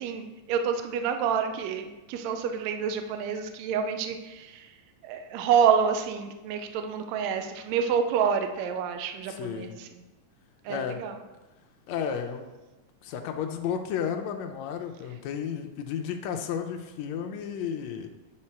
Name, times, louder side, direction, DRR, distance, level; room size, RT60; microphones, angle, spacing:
voice 1, 0.0-4.7 5.0-9.7 10.7-11.1, right 7 dB, 75° right, 7 dB, 1.8 m, -28 dB
voice 2, 9.3-9.8 10.7-11.0 11.9-12.5 13.0-18.1, left 7 dB, 80° left, 4 dB, 1.8 m, -33 dB
9.9 x 3.9 x 4.4 m, 1.1 s
omnidirectional pair, 3.4 m